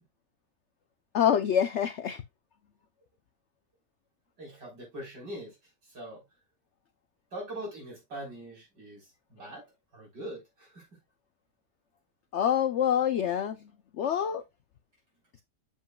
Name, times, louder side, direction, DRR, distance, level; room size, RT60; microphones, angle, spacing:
voice 1, 1.1-2.2 12.3-13.6 14.0-14.4, left 9 dB, 80° left, 0.6 m, -26 dB
voice 2, 4.4-5.6 5.9-6.2 7.3-9.6 9.9-10.9, right 1 dB, 90° right, 4.7 m, -42 dB
7.4 x 7.2 x 2.2 m
omnidirectional pair, 1.8 m